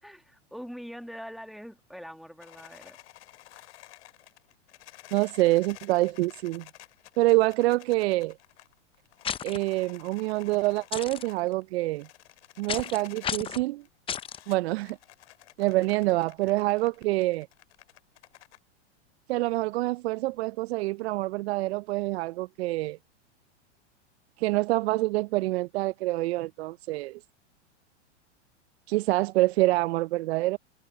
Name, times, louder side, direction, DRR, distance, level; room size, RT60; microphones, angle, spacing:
voice 1, 0.0-3.0, equal, ahead, 2.0 m, -43 dB
sound 1, 2.4-13.6 13.8-18.6, left 15 dB, 70° left, 5.1 m, -52 dB
voice 2, 5.1-6.6 7.2-8.3 9.4-12.1 12.6-13.8 14.5-15.0 15.6-17.5 19.3-23.0 24.4-27.2 28.9-30.6, right 19 dB, 60° right, 0.6 m, -26 dB
sound 2, 9.2-9.6 10.9-11.2 12.7-13.0 13.2-13.6 14.1-14.4, left 8 dB, 15° left, 0.6 m, -32 dB
hypercardioid pair, 115°, 36 cm